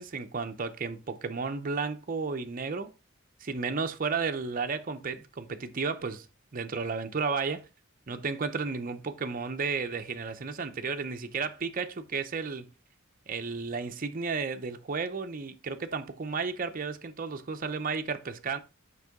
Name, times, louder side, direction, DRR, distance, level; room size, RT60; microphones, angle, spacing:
voice 1, 0.0-2.9 3.4-6.3 6.5-7.7 8.1-12.7 13.3-18.6, right 4 dB, 40° right, 0.6 m, -33 dB
6.6 x 5.4 x 3.6 m
head